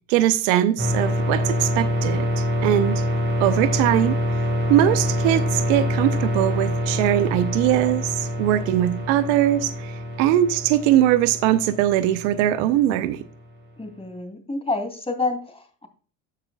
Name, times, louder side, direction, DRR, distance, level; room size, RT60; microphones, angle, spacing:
voice 1, 0.1-3.0 3.4-4.2 4.7-13.2, right 12 dB, 80° right, 0.7 m, -21 dB
sound 1, 0.8-13.3, equal, 30° right, 2.9 m, -26 dB
voice 2, 13.8-15.9, left 3 dB, 15° left, 2.6 m, -28 dB
14.5 x 5.9 x 2.3 m
hypercardioid pair, 70°, 37 cm